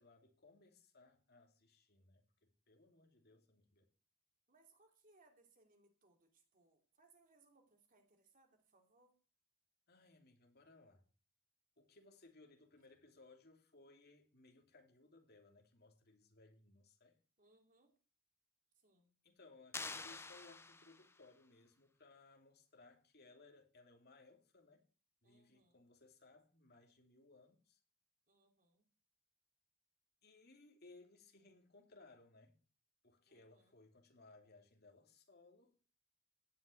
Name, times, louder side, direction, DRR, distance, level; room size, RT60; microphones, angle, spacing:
voice 1, 0.0-3.9 9.9-11.1 11.8-17.2 19.2-24.8 25.2-27.8 30.2-32.6 33.0-35.7, left 3 dB, 45° left, 3 dB, 2.8 m, -64 dB
voice 2, 4.5-9.2 17.4-17.9 18.7-19.2 25.2-25.9 28.3-28.9 33.3-33.8, right 3 dB, 40° right, 3 dB, 2.9 m, -72 dB
sound 1, 19.7-21.3, left 3 dB, 10° left, 0.6 m, -48 dB
17.0 x 5.8 x 9.2 m, 0.39 s
head